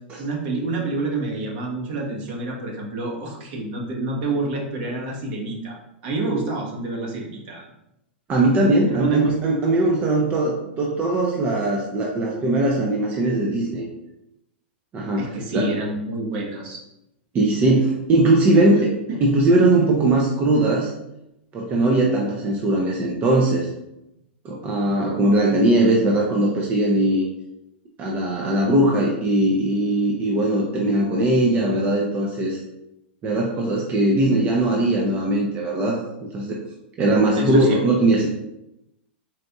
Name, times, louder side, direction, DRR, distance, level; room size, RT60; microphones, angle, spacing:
voice 1, 0.2-5.8 6.0-7.7 8.9-9.3 15.2-16.8 18.7-18.8 19.1-19.3 37.3-38.0, right 2 dB, 55° right, -1 dB, 1.0 m, -27 dB
voice 2, 8.3-13.9 14.9-15.7 17.3-18.9 19.2-20.9 21.5-23.7 24.4-27.3 28.0-32.6 33.2-36.0 36.3-36.6 37.0-38.3, right 2 dB, 25° right, -2 dB, 0.5 m, -20 dB
4.1 x 2.6 x 2.3 m, 0.87 s
hypercardioid pair, 120°, 6 cm